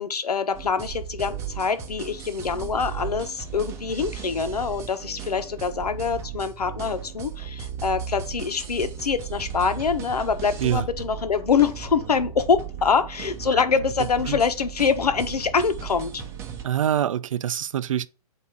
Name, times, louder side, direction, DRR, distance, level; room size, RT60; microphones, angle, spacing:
voice 1, 0.0-16.2, left 5 dB, 85° left, 1.2 m, -25 dB
sound 1, 0.5-16.6, right 8 dB, 15° right, 0.8 m, -36 dB
voice 2, 16.6-18.1, right 10 dB, 60° right, 0.5 m, -25 dB
8.2 x 2.9 x 4.7 m
hypercardioid pair, 155°, 20 cm